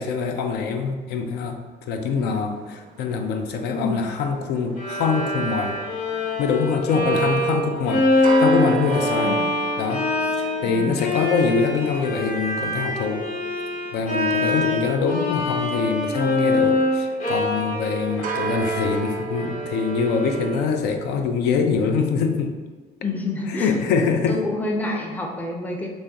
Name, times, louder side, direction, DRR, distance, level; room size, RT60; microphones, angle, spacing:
voice 1, 0.0-5.8 6.4-9.4 9.8-10.1 10.4-13.3 13.9-22.5 23.5-24.4, left 5 dB, 80° left, 5 dB, 0.4 m, -24 dB
sound 1, 2.0-20.7, right 5 dB, 55° right, 0.4 m, -36 dB
voice 2, 3.7-4.1 7.0-7.3 9.2-9.5 10.6-11.2 14.5-14.9 23.0-24.0 24.3-25.9, left 2 dB, 10° left, 0 dB, 0.5 m, -29 dB
Bowed string instrument, 4.8-20.8, left 2 dB, 45° left, 0.8 m, -25 dB
3.0 x 2.6 x 3.4 m, 1.3 s
cardioid pair, 110°, 17 cm